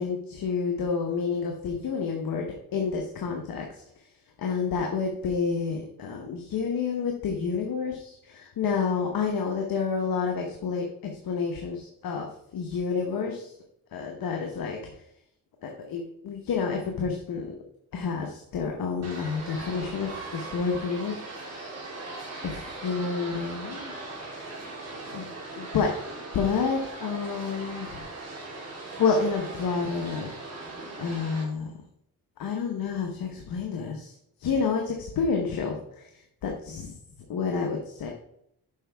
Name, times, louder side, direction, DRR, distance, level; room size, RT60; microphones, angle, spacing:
voice 1, 0.0-3.7 4.4-10.8 11.2-13.5 13.9-14.8 15.6-17.5 17.9-21.2 21.5-21.8 22.4-23.9 25.1-25.3 25.5-25.9 26.3-28.0 29.0-30.3 31.0-31.7 32.4-34.1 34.4-36.1 36.4-37.0 37.3-38.1, left 5 dB, 80° left, 2 dB, 1.1 m, -29 dB
sound 1, 19.0-31.4, right 2 dB, 45° right, 3.0 m, -39 dB
8.2 x 5.7 x 3.5 m, 0.73 s
cardioid pair, 70°, 35 cm